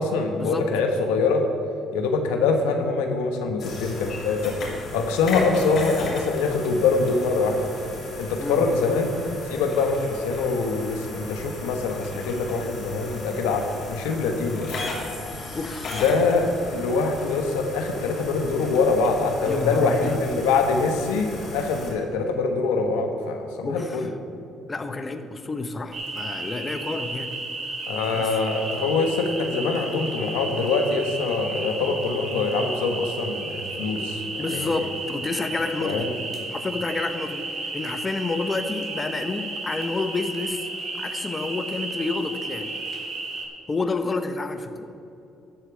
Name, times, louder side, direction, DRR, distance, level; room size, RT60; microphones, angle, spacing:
voice 1, 0.0-1.4 1.9-4.5 4.9-7.7 8.2-9.1 9.5-14.8 15.9-24.1 27.9-34.7 35.8-36.1, left 4 dB, 90° left, 4 dB, 1.1 m, -24 dB
sound 1, 3.6-21.9, left 2 dB, 60° left, 2.8 m, -36 dB
voice 2, 15.5-15.9 19.5-20.2 23.6-24.1 24.7-27.3 28.1-28.3 34.4-36.1 36.5-40.7 41.0-42.7 43.7-44.9, left 3 dB, 30° left, 8 dB, 0.9 m, -29 dB
sound 2, 25.9-43.4, right 2 dB, 45° right, 2.5 m, -33 dB
13.0 x 4.5 x 8.7 m, 2.8 s
supercardioid pair, 65°, 0 cm